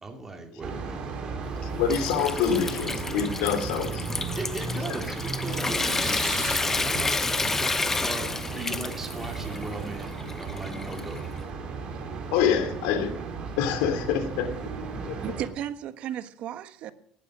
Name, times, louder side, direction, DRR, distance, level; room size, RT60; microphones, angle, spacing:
voice 1, 0.0-1.5 4.4-10.1 10.4-11.2, right 2 dB, 20° right, 2 dB, 2.6 m, -38 dB
sound 1, 0.6-15.5, right 4 dB, 40° right, 4.7 m, -35 dB
Water tap faucet / Sink (filling or washing) / Trickle dribble, 1.4-11.4, left 3 dB, 15° left, 1.0 m, -31 dB
voice 2, 1.8-4.0 12.3-13.1 13.6-14.6 15.1-15.2, left 7 dB, 85° left, 9 dB, 2.7 m, -26 dB
sound 2, 4.3-6.7, right 16 dB, 85° right, 1.1 m, -42 dB
voice 3, 15.2-16.9, right 10 dB, 60° right, 10 dB, 1.4 m, -34 dB
18.0 x 12.5 x 6.1 m, 0.65 s
cardioid pair, 115°, 2 cm